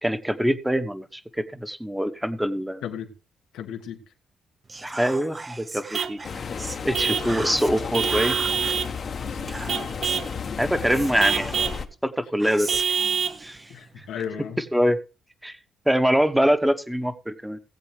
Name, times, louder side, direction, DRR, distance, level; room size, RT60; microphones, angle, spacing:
voice 1, 0.0-2.8 4.8-6.2 6.8-8.4 10.6-11.5 12.0-12.8 13.4-13.6 14.7-15.0 15.4-15.6 15.9-17.6, equal, 5° right, 1.0 m, -24 dB
voice 2, 2.8-3.1 3.5-4.0 7.2-7.4 9.2-9.5 13.7-14.6, left 8 dB, 85° left, 1.5 m, -35 dB
Whispering, 4.7-6.8 7.2-8.8 9.5-10.3 10.9-11.8 12.4-14.3, right 3 dB, 25° right, 0.6 m, -37 dB
Vehicle horn car horn honking / Truck, 5.9-6.2 6.9-7.3 7.9-9.0 9.7-10.3 11.2-11.8 12.7-13.4, right 7 dB, 60° right, 0.8 m, -26 dB
park ambient kids birds, 6.2-11.9, left 6 dB, 50° left, 1.0 m, -32 dB
18.0 x 7.7 x 3.3 m
cardioid pair, 90°, 0 cm